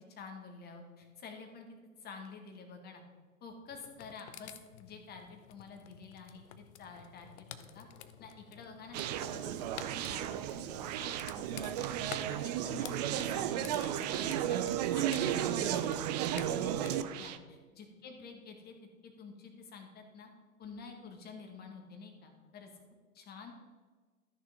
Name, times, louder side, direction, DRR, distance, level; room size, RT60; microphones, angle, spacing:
voice 1, 0.1-3.0 3.4-7.9 8.2-9.5 9.8-14.6 14.9-18.7 19.0-20.3 20.6-22.7 23.1-23.5, left 5 dB, 20° left, 3 dB, 1.6 m, -50 dB
sound 1, 3.7-16.9, left 10 dB, 50° left, 0.7 m, -52 dB
Conversation, 8.9-17.4, right 11 dB, 30° right, 0.4 m, -34 dB
13.5 x 6.4 x 3.6 m, 1.4 s
figure-of-eight pair, 110°, 42 cm